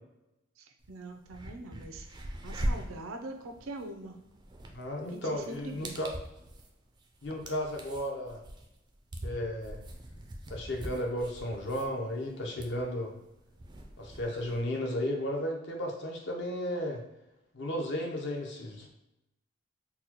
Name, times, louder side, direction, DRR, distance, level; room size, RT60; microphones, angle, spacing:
voice 1, 0.6-2.0 2.4-4.2 5.1-6.0, right 2 dB, 90° right, 5 dB, 0.5 m, -43 dB
sound 1, 0.8-0.9 1.2-14.6, equal, 20° right, 0.3 m, -41 dB
voice 2, 4.7-6.1 7.2-8.4 9.2-9.8 10.5-13.1 14.0-17.0 17.5-18.9, left 1 dB, 60° left, 1 dB, 0.6 m, -34 dB
4.0 x 2.2 x 2.9 m, 0.91 s
head